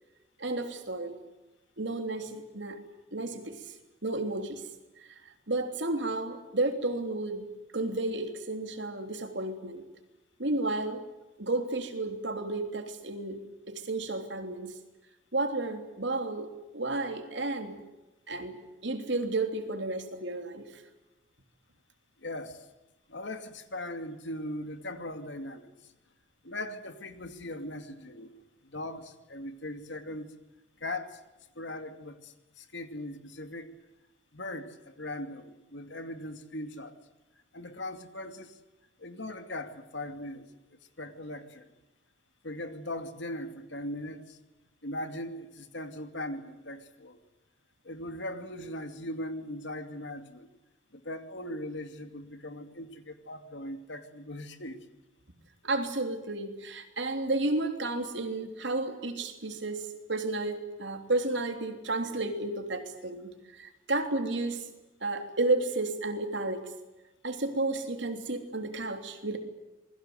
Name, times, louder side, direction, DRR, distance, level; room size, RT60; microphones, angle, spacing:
voice 1, 0.4-1.1 1.8-2.8 3.1-3.6 4.0-4.6 5.0-5.1 5.5-7.5 7.7-9.8 10.4-11.0 11.4-13.4 13.7-14.7 15.3-17.8 18.3-18.6 18.8-20.7 55.6-59.8 60.1-64.6 65.0-66.6 67.2-69.4, right 2 dB, 65° right, 5 dB, 3.4 m, -32 dB
voice 2, 22.2-22.7 23.1-25.7 26.4-28.3 28.6-30.3 30.8-31.2 31.6-33.7 34.3-37.0 37.5-38.6 39.0-40.5 41.0-41.7 42.4-44.4 44.8-47.2 47.8-50.5 50.9-54.8, left 1 dB, 65° left, 8 dB, 2.4 m, -39 dB
27.5 x 21.0 x 8.0 m, 1.1 s
head